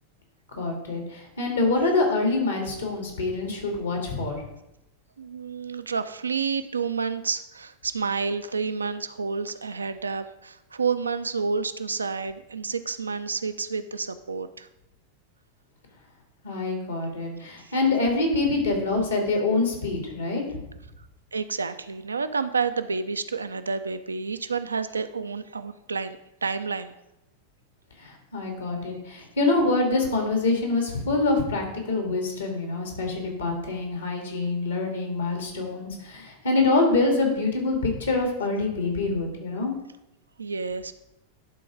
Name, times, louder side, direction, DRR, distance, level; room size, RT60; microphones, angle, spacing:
voice 1, 0.6-4.4 16.4-20.4 28.0-39.7, left 3 dB, 70° left, 3 dB, 2.1 m, -25 dB
voice 2, 5.2-14.7 17.6-17.7 21.3-26.9 40.4-40.9, right 5 dB, 75° right, 11 dB, 0.4 m, -29 dB
11.5 x 3.8 x 4.9 m, 0.88 s
figure-of-eight pair, 90°, 0 cm